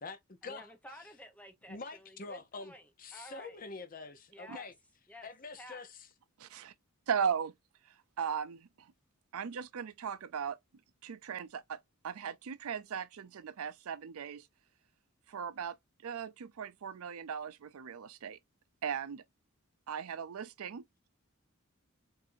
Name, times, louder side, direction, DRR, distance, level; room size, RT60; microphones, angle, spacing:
voice 1, 0.4-3.6 4.3-4.7 5.1-5.3 5.6-5.8, equal, 5° left, 0.8 m, -52 dB
voice 2, 1.7-2.7 3.0-4.7 5.2-6.0, left 3 dB, 40° left, 0.6 m, -45 dB
voice 3, 6.4-6.7 7.1-7.5 8.2-8.9 9.3-10.6 11.0-14.5 15.3-15.8 16.0-18.4 18.8-19.2 19.9-20.8, right 7 dB, 75° right, 0.4 m, -37 dB
4.5 x 2.6 x 2.6 m
head